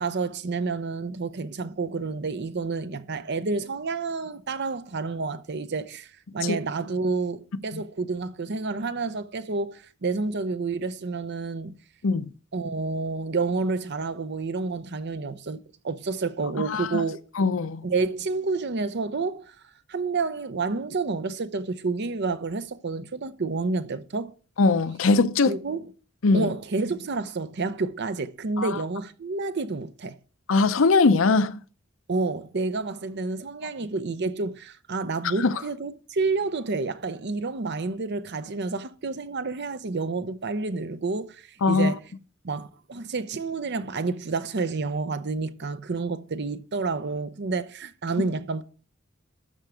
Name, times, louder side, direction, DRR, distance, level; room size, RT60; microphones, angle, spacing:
voice 1, 0.0-11.8 12.5-17.2 17.8-19.6 19.9-24.3 25.4-25.9 26.3-30.2 32.1-42.0 42.4-48.6, right 3 dB, 55° right, 0.7 m, -29 dB
voice 2, 16.7-17.0 17.4-17.8 24.6-25.6 26.2-26.5 28.6-28.8 30.5-31.6 35.4-35.5 41.6-41.9, left 3 dB, 70° left, 0.6 m, -21 dB
13.0 x 4.5 x 5.0 m
head